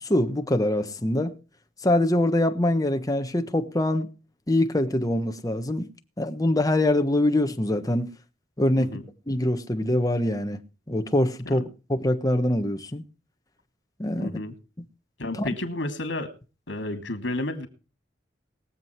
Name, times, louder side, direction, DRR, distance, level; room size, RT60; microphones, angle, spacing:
voice 1, 0.0-1.4 1.8-4.1 4.5-5.9 6.2-8.1 8.6-8.9 9.3-10.6 10.9-11.6 11.9-13.0 14.0-14.3 15.4-15.5, left 1 dB, 20° left, 1.3 m, -24 dB
voice 2, 14.2-14.5 15.2-16.3 16.7-17.7, left 2 dB, 80° left, 2.8 m, -31 dB
21.5 x 7.8 x 4.6 m
head